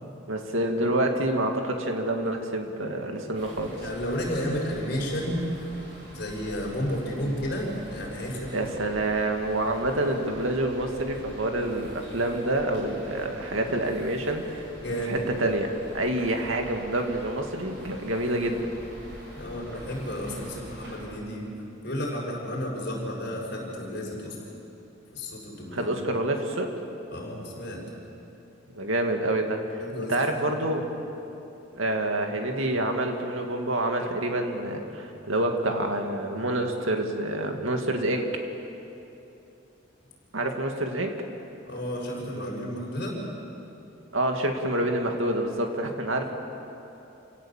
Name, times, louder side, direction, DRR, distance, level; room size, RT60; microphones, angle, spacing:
voice 1, 0.3-3.8 8.5-14.6 15.1-18.7 25.7-26.7 28.7-29.8 30.1-30.9 31.8-38.3 40.3-41.1 44.1-46.3, right 1 dB, 85° right, 3 dB, 2.4 m, -27 dB
sound 1, 3.3-21.0, equal, 60° right, 7.2 m, -45 dB
voice 2, 3.8-5.5 6.1-8.8 14.8-15.3 19.2-24.4 25.1-25.9 27.1-27.8 29.8-30.6 41.6-43.2, equal, 55° left, -3 dB, 6.4 m, -32 dB
28.0 x 17.5 x 7.5 m, 2.9 s
head